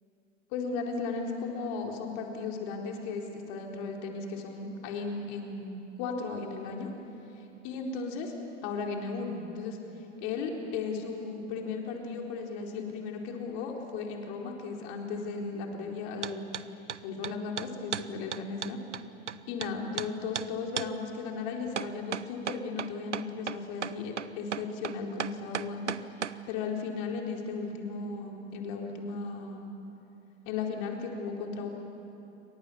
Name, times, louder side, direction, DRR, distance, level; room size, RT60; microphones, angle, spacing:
voice 1, 0.5-6.9 7.4-8.3 8.6-9.8 10.2-18.8 19.5-25.9 26.5-29.7 30.4-31.7, left 4 dB, 50° left, 1 dB, 4.2 m, -36 dB
sound 1, 16.2-16.6 16.9-19.7 20.0-20.1 20.3-20.5 20.8-20.9 21.8-26.4, right 7 dB, 85° right, 0.8 m, -34 dB
28.5 x 24.0 x 7.2 m, 3.0 s
figure-of-eight pair, 90°, 35 cm